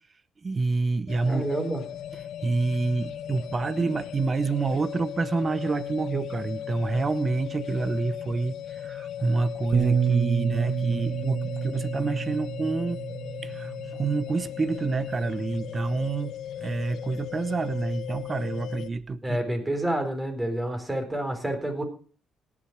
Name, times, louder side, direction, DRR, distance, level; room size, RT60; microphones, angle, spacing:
voice 1, 0.4-1.4 2.4-13.0 13.4-19.4, right 3 dB, 35° right, 0.9 m, -28 dB
sound 1, 1.1-18.9, left 10 dB, 75° left, 0.5 m, -37 dB
voice 2, 1.3-1.8 19.2-21.8, right 1 dB, 15° right, 3.9 m, -28 dB
Bass guitar, 9.7-14.2 15.0-16.0, right 8 dB, 65° right, 1.5 m, -29 dB
18.5 x 7.4 x 4.7 m
cardioid pair, 90°, 0 cm